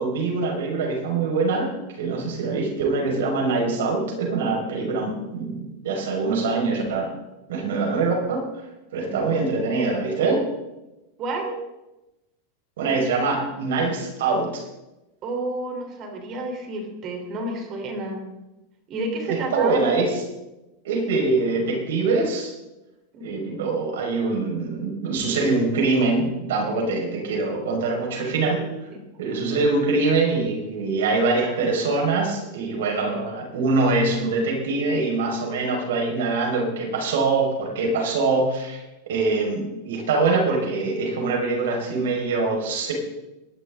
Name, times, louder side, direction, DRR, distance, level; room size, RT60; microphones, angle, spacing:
voice 1, 0.0-7.1 7.5-8.4 8.9-10.4 12.8-14.7 19.2-20.1 20.8-22.5 23.2-28.9 29.2-42.9, right 3 dB, 80° right, 0 dB, 5.5 m, -24 dB
voice 2, 9.0-9.5 11.2-11.6 15.2-18.2 18.9-19.8 23.1-23.5 28.1-28.4 28.9-29.0, right 2 dB, 35° right, 3 dB, 4.0 m, -31 dB
20.5 x 12.0 x 3.9 m, 0.99 s
supercardioid pair, 140°, 0 cm